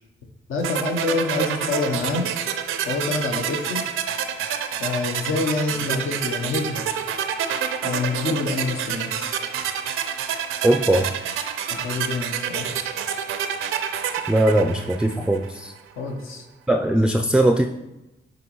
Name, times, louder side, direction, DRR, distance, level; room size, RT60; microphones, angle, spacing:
voice 1, 0.5-2.3 2.9-3.8 4.8-6.8 7.8-9.4 11.7-12.7 16.0-16.5, left 3 dB, 80° left, 3 dB, 0.9 m, -26 dB
sound 1, 0.6-15.5, right 8 dB, 85° right, 0.5 m, -28 dB
voice 2, 10.6-11.1 14.3-15.7 16.7-17.7, right 1 dB, 5° right, 6 dB, 0.4 m, -19 dB
7.9 x 4.0 x 3.1 m, 0.96 s
cardioid pair, 60°, 21 cm